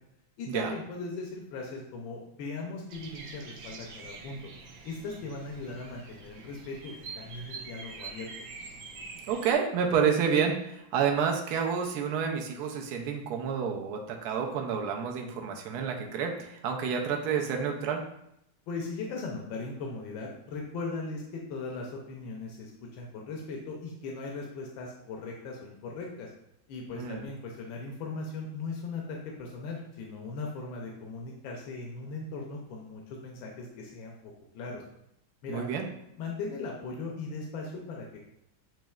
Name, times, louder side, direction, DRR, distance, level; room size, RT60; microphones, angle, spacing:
voice 1, 0.4-4.5 4.8-8.3 18.7-26.3 26.7-34.1 34.5-34.8 35.4-35.7 36.2-38.2, left 3 dB, 85° left, 0 dB, 1.4 m, -38 dB
Bird vocalization bird call bird song, 2.9-9.5, right 4 dB, 85° right, 1.5 m, -45 dB
voice 2, 9.3-18.0 26.9-27.3 35.5-35.8, right 6 dB, 70° right, 2 dB, 1.1 m, -29 dB
7.4 x 3.0 x 2.3 m, 0.79 s
omnidirectional pair, 2.1 m